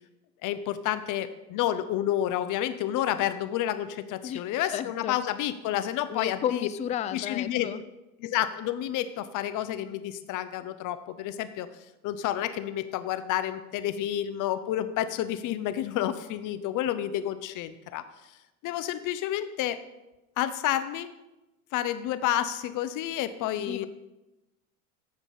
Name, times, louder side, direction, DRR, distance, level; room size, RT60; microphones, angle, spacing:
voice 1, 0.4-6.7 7.1-7.7 8.2-11.7 12.0-18.0 18.6-19.8 20.4-21.1 21.7-23.9, left 12 dB, 45° left, 12 dB, 0.9 m, -30 dB
voice 2, 4.7-5.2 5.7-5.8 6.1-7.8 23.6-23.8, left 10 dB, 20° left, 14 dB, 0.3 m, -32 dB
14.0 x 5.2 x 5.6 m, 1.0 s
hypercardioid pair, 105°, 43 cm